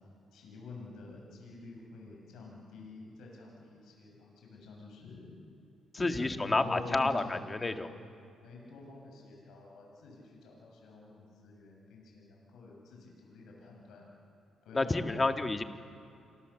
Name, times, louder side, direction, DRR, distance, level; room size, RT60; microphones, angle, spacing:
voice 1, 0.3-5.4 5.9-7.8 8.4-14.1 14.6-15.3, left 3 dB, 80° left, -1 dB, 7.3 m, -47 dB
voice 2, 6.0-7.9 14.7-15.6, left 3 dB, 25° left, 6 dB, 1.6 m, -29 dB
27.5 x 24.0 x 7.3 m, 2.7 s
cardioid pair, 90°, 0 cm